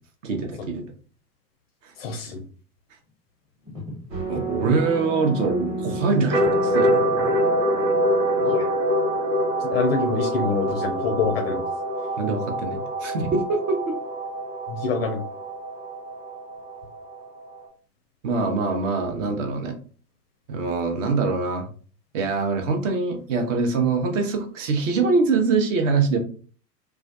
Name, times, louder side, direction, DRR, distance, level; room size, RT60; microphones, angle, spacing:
voice 1, 0.2-0.8 1.8-1.9 4.3-7.0 12.2-14.0 18.2-19.7 20.5-21.7 22.1-26.2, right 4 dB, 50° right, 4 dB, 0.8 m, -24 dB
voice 2, 2.0-2.4 8.4-8.7 9.6-11.6 14.7-15.2, left 4 dB, 40° left, 5 dB, 0.4 m, -26 dB
sound 1, 3.1-3.2 3.6-4.7 5.0-5.2 5.6-5.7 6.1-6.7 7.1-7.3 7.9-8.0, left 1 dB, 10° right, 0.6 m, -38 dB
sound 2, 4.1-17.7, equal, 80° right, 1.4 m, -25 dB
2.3 x 2.2 x 2.5 m, 0.41 s
figure-of-eight pair, 105°, 50 cm